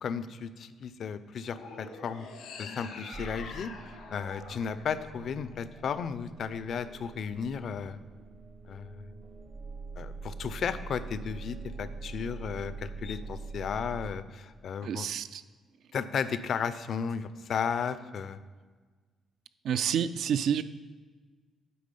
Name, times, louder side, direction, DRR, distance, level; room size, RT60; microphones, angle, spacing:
voice 1, 0.0-2.3 2.6-3.7 4.1-8.0 8.7-9.1 10.0-15.1 15.9-18.4, left 7 dB, 60° left, 14 dB, 0.4 m, -34 dB
sound 1, 1.5-5.8, left 4 dB, 85° left, 1.1 m, -45 dB
sound 2, 3.1-14.1, right 4 dB, 35° right, 0.7 m, -44 dB
voice 2, 14.8-15.4 19.6-20.6, right 8 dB, 75° right, 13 dB, 0.3 m, -29 dB
8.5 x 4.0 x 5.3 m, 1.4 s
cardioid pair, 90°, 0 cm